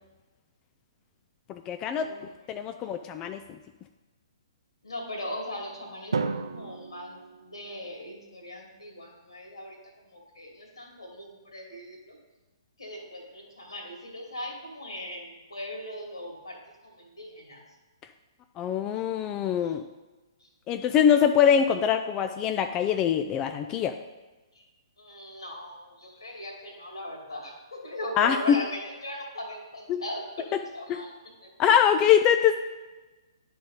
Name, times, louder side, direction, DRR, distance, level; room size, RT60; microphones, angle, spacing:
voice 1, 1.5-2.1 2.5-3.4 18.6-19.8 20.7-24.0 28.2-28.6 29.9-30.0 30.5-30.6 30.9-31.0 31.6-32.6, left 8 dB, 25° left, 7 dB, 0.3 m, -23 dB
voice 2, 4.8-9.8 10.0-12.2 12.8-17.6 19.6-19.7 20.4-20.5 25.0-31.1 31.4-31.5, left 1 dB, 85° left, 0 dB, 2.3 m, -39 dB
Drum, 6.1-8.2, right 4 dB, 80° right, 0.5 m, -34 dB
10.5 x 3.9 x 4.0 m, 1.2 s
figure-of-eight pair, 130°, 3 cm